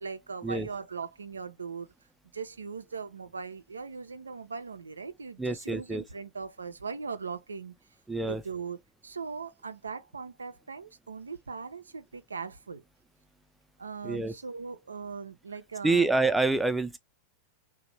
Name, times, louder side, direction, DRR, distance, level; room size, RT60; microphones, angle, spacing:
voice 1, 0.0-1.9 2.3-7.7 8.2-8.8 9.0-12.8 13.8-16.1, right 5 dB, 75° right, 0.4 m, -39 dB
voice 2, 5.4-6.0 8.1-8.4 14.0-14.3 15.8-17.0, right 3 dB, 5° right, 0.4 m, -27 dB
2.8 x 2.1 x 2.9 m
figure-of-eight pair, 90°, 0 cm